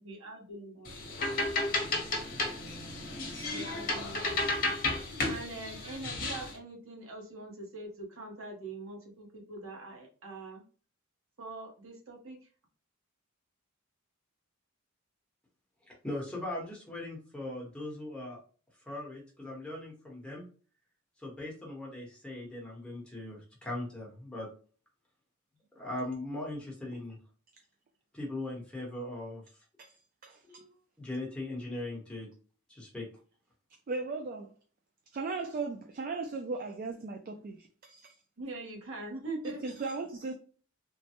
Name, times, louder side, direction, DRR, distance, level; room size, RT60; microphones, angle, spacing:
voice 1, 0.0-1.4 3.5-4.7 5.3-10.6 11.4-12.5 38.4-39.6, right 2 dB, 65° right, 1.0 m, -43 dB
sound 1, 0.9-6.5, left 2 dB, 45° left, 0.9 m, -33 dB
voice 2, 16.0-18.4 18.9-20.5 21.2-24.5 25.7-27.2 28.1-29.4 30.5-30.7 31.0-32.3 32.7-33.1, left 1 dB, 5° left, 1.0 m, -39 dB
voice 3, 30.2-30.6 33.9-34.5 35.1-38.2 39.6-40.3, right 3 dB, 40° right, 0.3 m, -37 dB
3.1 x 2.1 x 2.8 m
head